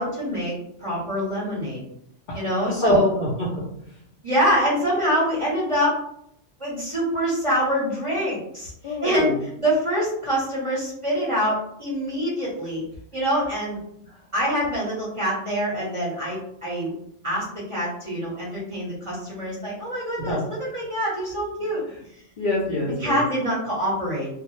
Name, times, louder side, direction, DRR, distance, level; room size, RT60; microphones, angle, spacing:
voice 1, 0.0-1.8 2.3-3.1 4.2-6.0 6.6-12.8 13.1-13.8 14.3-16.9 17.2-21.8 23.0-24.3, equal, 35° right, -7 dB, 0.6 m, -25 dB
voice 2, 2.3-3.6 8.8-9.4 14.0-14.2 20.3-20.5 21.6-22.0 22.4-23.2, left 1 dB, 60° left, -4 dB, 0.6 m, -27 dB
2.0 x 2.0 x 3.0 m, 0.74 s
omnidirectional pair, 1.2 m